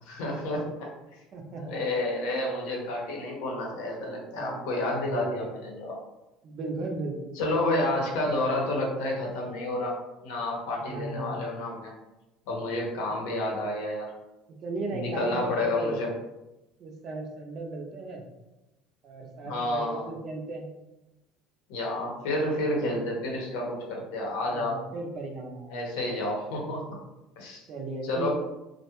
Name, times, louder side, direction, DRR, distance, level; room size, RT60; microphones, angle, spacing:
voice 1, 0.0-1.2 1.6-6.0 7.4-11.9 12.5-14.1 14.9-16.1 19.4-20.0 21.7-24.8 25.7-27.0 27.4-27.6 28.0-28.3, left 1 dB, 85° left, -1 dB, 0.7 m, -30 dB
voice 2, 1.3-1.8 2.3-2.4 4.3-5.6 6.4-7.4 10.8-11.6 14.6-16.0 16.8-18.3 19.0-20.7 24.5-25.8 27.7-28.3, right 2 dB, 35° right, 2 dB, 0.4 m, -36 dB
2.2 x 2.1 x 2.9 m, 0.99 s
cardioid pair, 170°, 0 cm